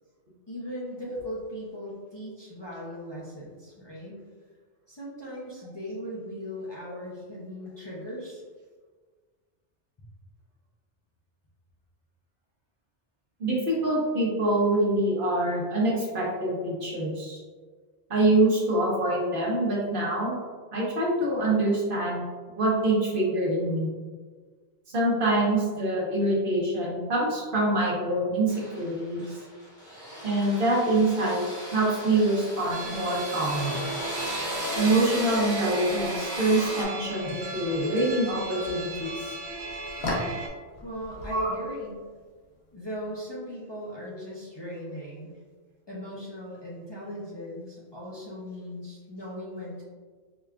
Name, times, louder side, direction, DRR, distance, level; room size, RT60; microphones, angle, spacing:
voice 1, 0.5-4.2 4.9-8.4 40.8-42.0 42.7-45.4 45.9-49.8, equal, 30° left, -7 dB, 0.5 m, -38 dB
voice 2, 13.4-17.4 18.1-20.4 20.7-22.2 22.6-23.9 24.9-29.3 30.2-31.4 31.7-33.7 34.8-39.4 41.3-41.5, right 2 dB, 60° right, -5 dB, 1.1 m, -25 dB
sound 1, 28.5-36.8, equal, 5° left, 1.0 m, -36 dB
sound 2, 31.9-43.2, left 1 dB, 70° left, 1.0 m, -41 dB
sound 3, 32.7-40.5, right 2 dB, 85° right, 0.9 m, -37 dB
4.9 x 2.3 x 2.3 m, 1.5 s
omnidirectional pair, 1.1 m